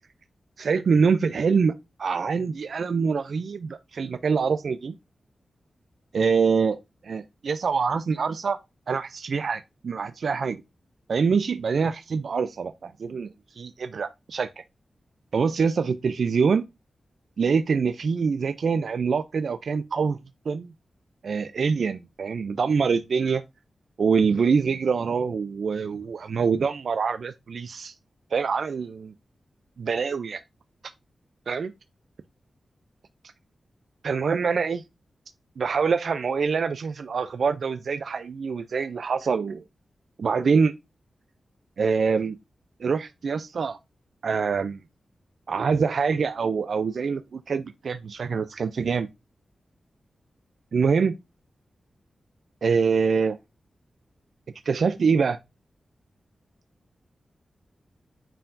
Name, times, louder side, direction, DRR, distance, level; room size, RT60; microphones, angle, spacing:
voice 1, 0.6-5.0 6.1-8.6 8.9-10.6 11.1-14.6 15.3-16.6 17.4-20.2 20.5-20.7 21.2-23.4 24.0-27.9 28.3-29.1 29.8-30.4 31.5-31.7 34.0-34.8 35.6-39.6 40.2-40.7 41.8-42.4 42.8-43.8 44.2-44.8 45.5-49.1 50.7-51.2 52.6-53.4 54.7-55.4, right 5 dB, 65° right, 0.3 m, -25 dB
8.9 x 4.5 x 2.5 m
wide cardioid pair, 145°, 0 cm